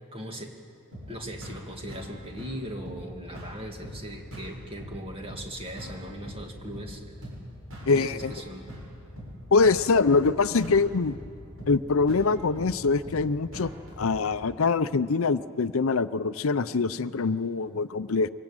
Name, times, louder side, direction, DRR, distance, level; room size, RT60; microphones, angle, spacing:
voice 1, 0.1-0.6 1.1-7.3 7.8-8.7, equal, 25° right, 2 dB, 2.3 m, -39 dB
sound 1, 0.9-14.3, equal, 65° right, 7.4 m, -42 dB
voice 2, 7.9-8.3 9.5-11.1 11.7-18.3, left 4 dB, 70° left, 14 dB, 0.6 m, -24 dB
24.5 x 21.0 x 9.0 m, 2.4 s
head